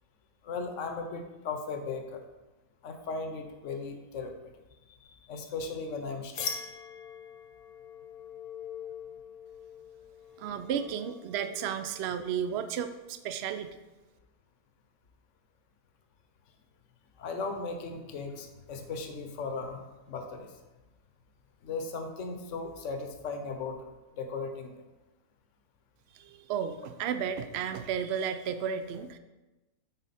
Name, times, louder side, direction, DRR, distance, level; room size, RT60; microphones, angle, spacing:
voice 1, 0.4-2.2 2.8-4.5 4.9-6.6 17.2-20.6 21.6-24.8, left 4 dB, 60° left, 6 dB, 1.1 m, -37 dB
sound 1, 6.3-11.9, left 6 dB, 75° left, 1.3 m, -42 dB
voice 2, 10.4-13.8 26.1-29.2, right 8 dB, 65° right, 10 dB, 0.6 m, -33 dB
8.1 x 4.8 x 4.1 m, 1.1 s
omnidirectional pair, 1.6 m